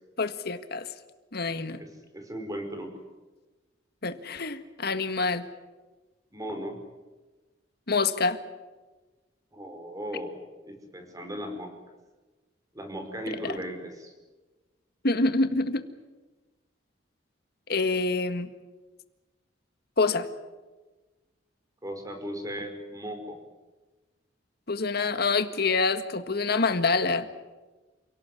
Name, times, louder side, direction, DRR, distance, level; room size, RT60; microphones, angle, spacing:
voice 1, 0.2-0.9 1.3-1.8 4.0-5.4 7.9-8.4 13.5-13.6 15.0-15.8 17.7-18.5 20.0-20.3 24.7-27.3, left 3 dB, 55° left, 10 dB, 1.7 m, -26 dB
voice 2, 1.6-1.9 2.1-3.0 6.3-6.8 9.5-11.7 12.7-14.1 21.8-23.4, equal, 20° right, 5 dB, 5.2 m, -37 dB
28.5 x 18.0 x 9.9 m, 1.2 s
head